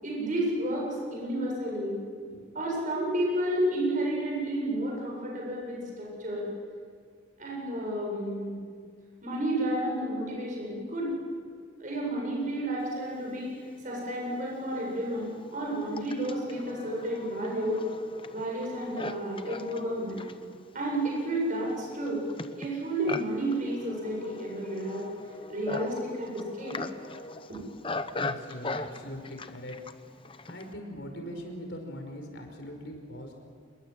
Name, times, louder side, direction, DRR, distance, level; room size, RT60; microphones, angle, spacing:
voice 1, 0.0-2.0 2.5-6.5 7.4-8.6 9.2-11.2 11.8-13.5 13.8-17.8 18.3-20.2 20.7-22.3 22.6-25.1 25.5-26.8, right 1 dB, 40° right, -3 dB, 7.7 m, -31 dB
Livestock farm animals working animals, 14.0-14.1 14.8-30.7, left 3 dB, 25° left, 0.9 m, -40 dB
voice 2, 28.2-29.8 30.4-33.3, equal, 60° left, 4 dB, 5.1 m, -41 dB
27.5 x 22.0 x 7.8 m, 2.1 s
head